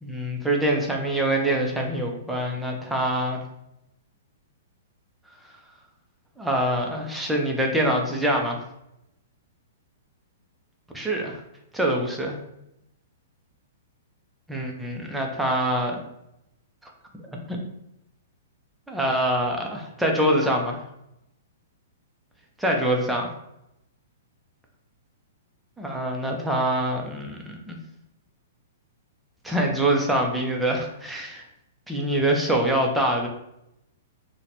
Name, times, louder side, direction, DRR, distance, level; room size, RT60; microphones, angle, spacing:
voice 1, 0.0-3.4 6.4-8.6 10.9-11.4 11.7-12.4 14.5-16.0 16.8-16.9 17.3-17.6 18.9-20.8 22.6-23.3 25.8-27.8 29.4-31.5 31.9-33.3, right 1 dB, 5° right, 0 dB, 0.5 m, -25 dB
2.8 x 2.1 x 4.1 m, 0.83 s
hypercardioid pair, 145°, 0 cm